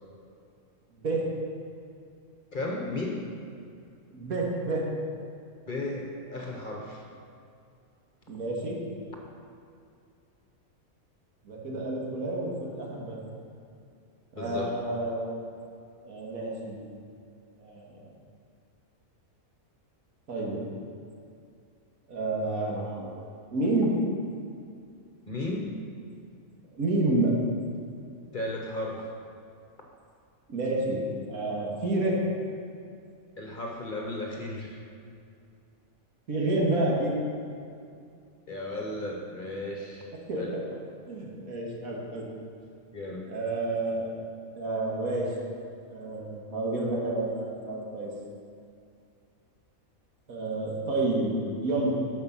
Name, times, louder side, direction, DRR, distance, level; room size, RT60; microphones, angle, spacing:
voice 1, 2.5-3.3 5.7-7.0 14.3-14.7 25.3-25.7 28.3-29.1 33.4-34.8 38.5-40.1 40.3-40.6 42.9-43.3 46.9-47.0, left 2 dB, 40° left, 0 dB, 1.1 m, -34 dB
voice 2, 4.1-4.9 8.3-8.8 11.5-13.2 14.3-15.4 16.0-16.8 17.6-18.1 20.3-20.6 22.1-23.9 26.7-27.3 30.5-31.0 31.3-32.2 36.3-37.1 40.3-40.6 41.1-42.3 43.3-44.1 44.6-45.3 45.9-48.1 50.3-51.3 51.6-52.0, right 2 dB, 85° right, -3 dB, 2.0 m, -29 dB
13.0 x 5.3 x 5.5 m, 2.4 s
omnidirectional pair, 1.5 m